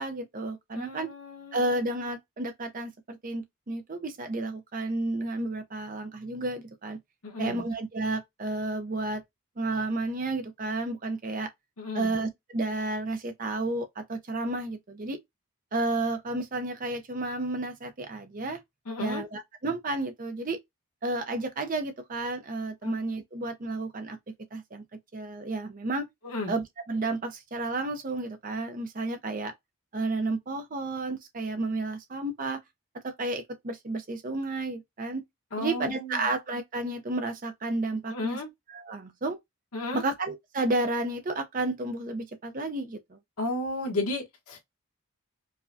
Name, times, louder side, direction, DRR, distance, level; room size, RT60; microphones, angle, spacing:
voice 1, 0.0-1.1 1.5-7.0 7.4-9.2 9.6-11.5 11.9-15.2 15.7-18.6 19.0-20.6 21.0-24.2 24.5-24.8 25.1-26.1 26.5-29.5 29.9-32.6 33.0-35.2 35.6-38.4 38.7-39.4 39.9-43.2, right 2 dB, 35° right, 0.5 m, -31 dB
voice 2, 0.7-1.8 7.2-7.6 11.8-12.1 18.9-19.2 22.8-22.9 26.2-26.5 35.5-36.3 38.1-38.5 39.7-40.0 43.4-44.6, left 2 dB, 80° left, 1.1 m, -33 dB
4.8 x 2.2 x 2.6 m
head